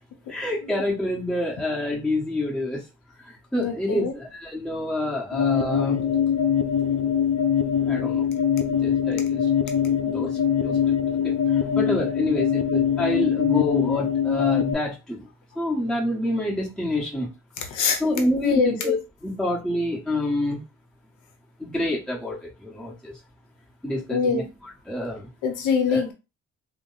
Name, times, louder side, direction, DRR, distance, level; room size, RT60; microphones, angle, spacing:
voice 1, 0.3-2.8 3.5-6.0 7.8-8.2 8.7-9.4 10.0-10.3 10.6-10.8 11.2-11.3 11.8-15.2 15.6-17.3 18.0-19.0 19.2-20.6 21.6-22.4 22.6-23.1 23.8-25.3 25.9-26.0, left 1 dB, ahead, 1.1 m, -27 dB
voice 2, 3.6-4.1 17.7-18.7 24.1-24.5 25.4-26.1, left 5 dB, 90° left, 0.7 m, -24 dB
sound 1, 5.3-14.7, left 8 dB, 55° left, 0.5 m, -23 dB
3.1 x 2.0 x 3.9 m
cardioid pair, 90°, 30 cm